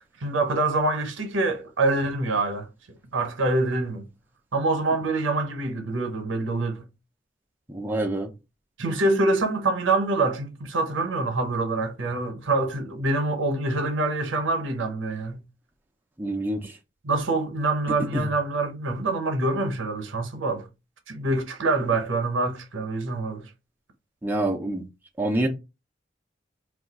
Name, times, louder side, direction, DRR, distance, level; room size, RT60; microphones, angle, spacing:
voice 1, 0.2-2.7 3.1-4.1 4.5-6.9 8.8-15.4 17.0-20.7 21.1-23.5, right 2 dB, 90° right, 0.7 m, -25 dB
voice 2, 7.7-8.3 16.2-16.8 18.1-18.3 24.2-24.8 25.2-25.5, right 1 dB, 10° right, 0.4 m, -26 dB
2.4 x 2.2 x 3.8 m
head